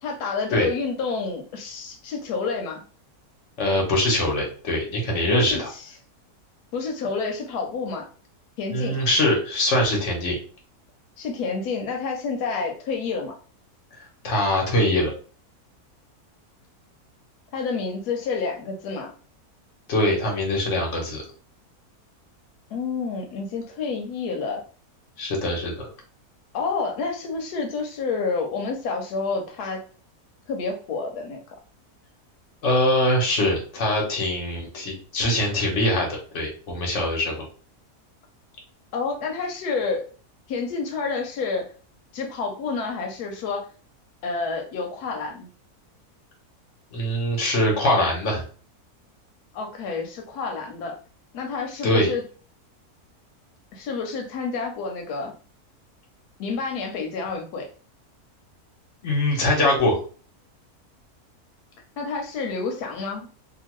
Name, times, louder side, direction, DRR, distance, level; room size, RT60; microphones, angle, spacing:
voice 1, 0.0-2.8 5.3-5.9 6.7-8.1 8.6-9.0 11.2-13.4 17.5-19.1 22.7-24.6 26.5-29.8 30.5-31.6 38.9-40.0 40.5-41.7 42.1-43.7 44.2-45.5 49.5-51.0 51.3-52.2 53.7-55.3 56.4-57.7 62.0-63.3, left 4 dB, 90° left, 2 dB, 1.2 m, -29 dB
voice 2, 3.6-5.7 8.7-10.4 14.2-15.1 19.9-21.2 25.2-25.9 32.6-37.5 46.9-48.4 51.8-52.1 59.0-60.0, left 1 dB, 55° left, -1 dB, 1.2 m, -23 dB
2.9 x 2.3 x 3.0 m, 0.39 s
omnidirectional pair, 1.6 m